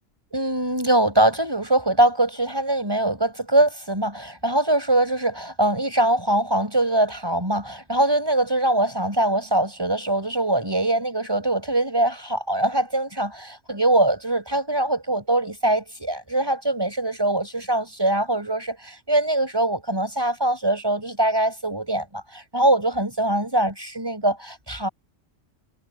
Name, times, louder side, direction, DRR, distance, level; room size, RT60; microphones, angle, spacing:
voice 1, 0.3-24.9, right 1 dB, 20° right, 6.6 m, -22 dB
omnidirectional pair, 1.3 m